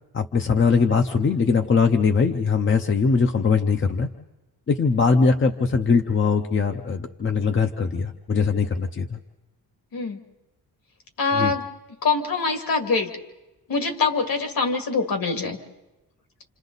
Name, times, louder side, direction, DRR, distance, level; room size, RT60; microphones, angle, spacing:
voice 1, 0.1-4.1 4.7-9.2 11.3-11.5, left 5 dB, 30° left, 6 dB, 0.8 m, -21 dB
voice 2, 11.2-11.7 12.0-13.1 13.7-15.6, left 4 dB, 60° left, 4 dB, 2.4 m, -24 dB
28.5 x 27.5 x 4.0 m, 1.0 s
wide cardioid pair, 175°, 40 cm